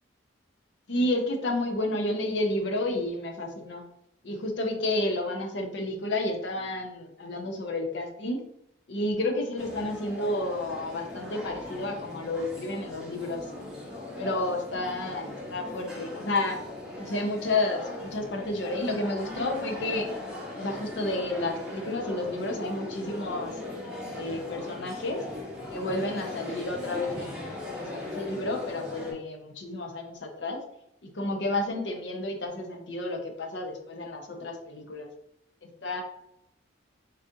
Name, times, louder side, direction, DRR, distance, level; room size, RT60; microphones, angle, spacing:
voice 1, 0.9-3.8 4.2-8.4 8.9-13.4 14.2-16.6 17.0-20.1 20.5-25.2 25.7-30.6 31.0-35.1 35.6-36.0, left 2 dB, 70° left, 3 dB, 0.7 m, -31 dB
sound 1, 9.6-29.1, left 2 dB, 5° right, 1.2 m, -39 dB
4.1 x 3.6 x 2.6 m, 0.81 s
head